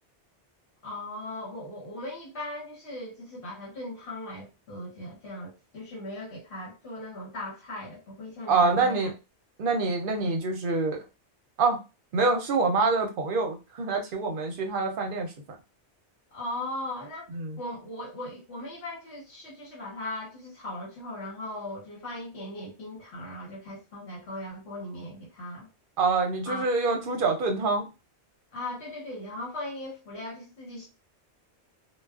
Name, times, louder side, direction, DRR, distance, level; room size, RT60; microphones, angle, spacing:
voice 1, 0.8-9.1 16.3-17.3 17.6-25.7 26.4-26.7 28.5-30.9, left 1 dB, 70° left, 1.2 m, -38 dB
voice 2, 8.5-9.1 9.6-11.0 11.6-11.8 12.1-15.3 17.3-17.6 26.0-27.9, right 3 dB, 55° right, 0.7 m, -26 dB
2.3 x 2.3 x 2.3 m
omnidirectional pair, 1.2 m